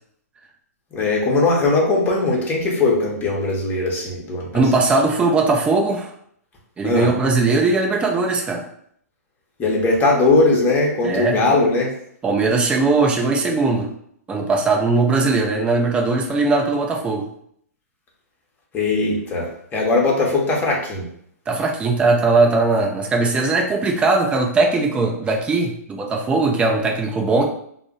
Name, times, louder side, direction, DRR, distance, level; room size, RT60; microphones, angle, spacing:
voice 1, 0.9-4.5 6.8-7.1 9.6-11.9 18.7-21.1, left 3 dB, 20° left, -3 dB, 0.9 m, -19 dB
voice 2, 4.5-6.1 6.8-8.6 11.0-11.4 12.2-13.9 14.3-17.3 21.5-27.5, right 3 dB, 10° right, 1 dB, 0.4 m, -19 dB
2.4 x 2.0 x 3.8 m, 0.67 s
hypercardioid pair, 130°, 9 cm